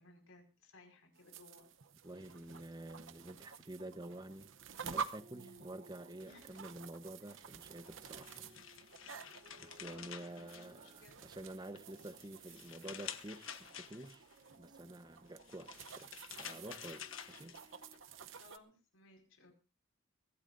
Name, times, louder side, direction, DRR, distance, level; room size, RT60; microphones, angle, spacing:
voice 1, 0.0-1.7 5.3-5.8 6.2-6.6 7.2-7.4 9.4-11.3 18.3-19.5, left 2 dB, 90° left, 5.4 m, -61 dB
sound 1, 1.1-18.6, right 6 dB, 65° right, 0.9 m, -50 dB
voice 2, 2.0-4.5 4.8-8.4 9.6-14.2 14.6-16.1 16.4-17.5, right 1 dB, 20° right, 1.0 m, -49 dB
sound 2, 4.7-18.4, right 1 dB, 40° right, 1.6 m, -65 dB
sound 3, 7.9-11.2 11.6-14.3 15.3-18.0, left 9 dB, 70° left, 1.3 m, -50 dB
23.0 x 16.5 x 2.6 m
head